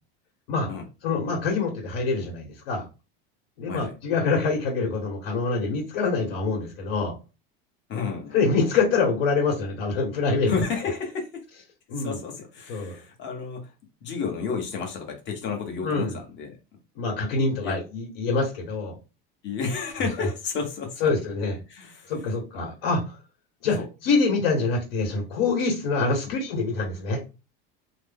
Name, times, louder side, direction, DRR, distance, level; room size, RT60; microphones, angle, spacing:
voice 1, 1.0-2.8 3.6-7.1 8.3-10.5 11.9-12.2 12.7-13.0 15.8-16.2 17.0-19.0 21.0-21.5 22.1-23.2 23.6-27.2, left 4 dB, 75° left, -2 dB, 1.5 m, -25 dB
voice 2, 7.9-8.4 10.5-11.4 12.0-13.7 14.0-16.5 17.6-17.8 19.4-21.0 21.7-22.1 22.5-22.7 23.8-23.9, left 5 dB, 40° left, 2 dB, 1.2 m, -31 dB
3.1 x 2.1 x 3.5 m, 0.29 s
supercardioid pair, 135°, 29 cm